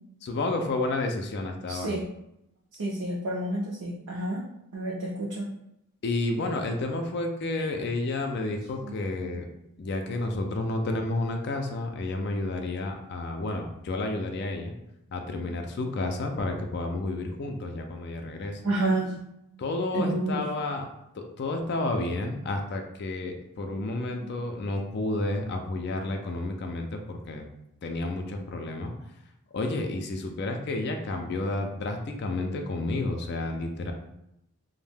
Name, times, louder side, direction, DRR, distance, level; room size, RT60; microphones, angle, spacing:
voice 1, 0.2-1.9 6.0-9.5 9.8-14.7 15.1-18.6 19.6-20.9 21.1-27.4 27.8-28.9 29.5-33.9, left 2 dB, 50° left, 4 dB, 0.3 m, -31 dB
voice 2, 1.7-2.0 2.7-4.4 4.7-5.5 8.8-8.9 15.4-15.6 18.6-19.2 19.9-20.5 23.7-23.8 24.2-24.3, right 2 dB, 90° right, -4 dB, 0.5 m, -30 dB
2.6 x 2.0 x 3.3 m, 0.83 s
head